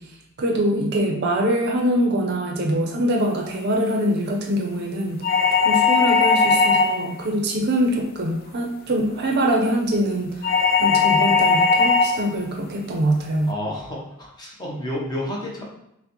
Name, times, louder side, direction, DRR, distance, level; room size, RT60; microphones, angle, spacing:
voice 1, 0.4-5.2 5.6-10.5 10.8-13.5, equal, 45° right, 1 dB, 0.6 m, -23 dB
sound 1, 5.2-7.2 10.4-12.2, left 4 dB, 40° left, 0.3 m, -18 dB
voice 2, 13.5-15.6, left 1 dB, 20° left, -3 dB, 0.7 m, -30 dB
5.6 x 2.1 x 2.9 m, 0.80 s
head